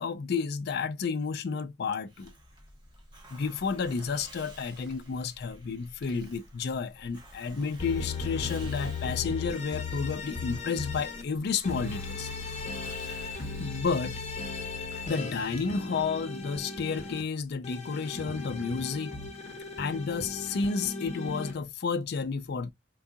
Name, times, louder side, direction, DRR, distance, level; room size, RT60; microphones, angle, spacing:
voice 1, 0.0-2.3 3.3-12.3 13.0-13.3 13.6-14.2 14.9-19.2 19.4-22.7, left 5 dB, 55° left, 0.4 m, -31 dB
Hiss, 2.1-15.6, right 1 dB, 25° right, 1.2 m, -51 dB
sound 1, 7.8-11.2 11.6-17.2 17.6-21.5, left 4 dB, 35° left, 0.9 m, -37 dB
4.5 x 2.4 x 2.6 m
head